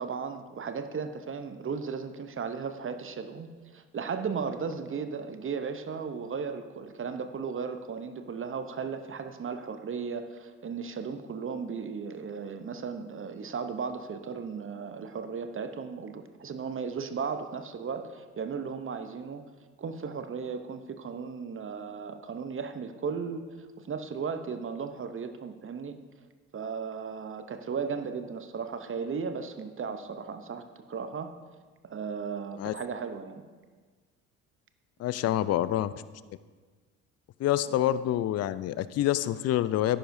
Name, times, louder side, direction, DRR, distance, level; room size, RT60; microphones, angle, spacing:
voice 1, 0.0-19.4 19.8-23.4 23.8-26.0 26.5-31.3 31.8-33.4, right 5 dB, 30° right, 8 dB, 0.8 m, -36 dB
voice 2, 35.0-35.9 37.4-40.0, left 12 dB, 40° left, 16 dB, 0.5 m, -27 dB
13.0 x 10.0 x 2.7 m, 1.4 s
hypercardioid pair, 60°, 41 cm